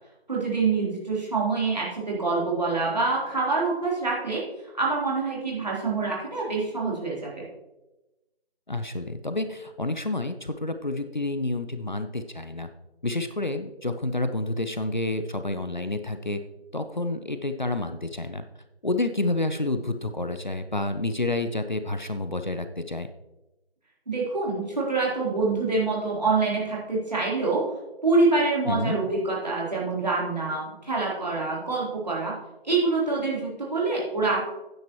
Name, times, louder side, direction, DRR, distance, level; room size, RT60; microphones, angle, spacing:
voice 1, 0.3-4.4 4.7-7.5 24.1-27.6 28.0-32.3 32.6-34.4, right 3 dB, 40° right, -5 dB, 3.6 m, -26 dB
voice 2, 8.7-12.7 13.0-16.4 16.7-18.4 18.8-23.1 28.7-29.1, left 2 dB, 50° left, 8 dB, 0.6 m, -29 dB
12.0 x 9.4 x 3.0 m, 1.0 s
figure-of-eight pair, 175°, 31 cm